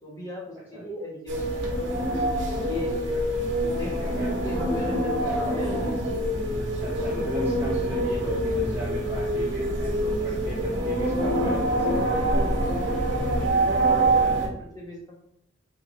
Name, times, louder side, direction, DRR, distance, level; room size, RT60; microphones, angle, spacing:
voice 1, 0.0-2.3 2.6-5.8 13.8-15.2, left 2 dB, 20° left, -3 dB, 1.2 m, -37 dB
sound 1, 1.3-14.5, right 1 dB, 65° right, 1.2 m, -25 dB
voice 2, 4.0-4.4 5.2-5.4 6.6-12.4, equal, 10° right, -7 dB, 0.9 m, -37 dB
5.0 x 2.5 x 4.1 m, 0.73 s
head